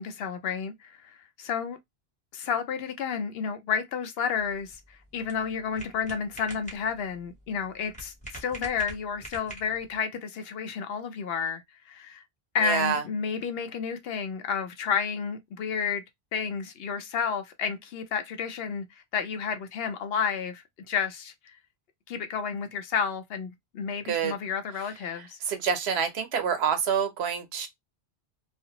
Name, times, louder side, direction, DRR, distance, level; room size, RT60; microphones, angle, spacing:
voice 1, 0.0-1.8 2.3-4.8 5.1-12.2 12.5-16.0 16.3-18.8 19.1-21.5 22.1-25.4, left 6 dB, 70° left, 0.8 m, -31 dB
sound 1, 4.4-10.0, right 1 dB, 10° left, 0.9 m, -45 dB
voice 2, 12.6-13.0 24.0-24.4 25.1-27.7, right 7 dB, 80° right, 0.9 m, -27 dB
2.4 x 2.0 x 2.7 m
omnidirectional pair, 1.1 m